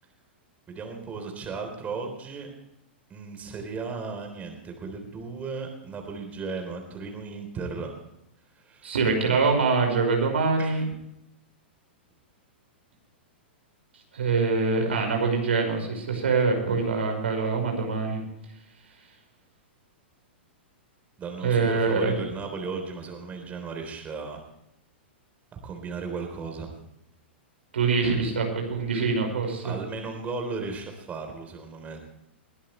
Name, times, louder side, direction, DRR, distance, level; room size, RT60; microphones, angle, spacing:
voice 1, 0.7-2.5 3.1-7.9 8.6-8.9 10.6-10.8 21.2-24.4 25.6-26.7 29.6-32.0, right 4 dB, 25° right, 4 dB, 3.8 m, -35 dB
voice 2, 8.8-10.8 14.1-18.2 21.4-22.1 27.7-29.7, right 4 dB, 80° right, 3 dB, 5.6 m, -24 dB
21.5 x 13.0 x 3.3 m, 0.80 s
hypercardioid pair, 115°, 6 cm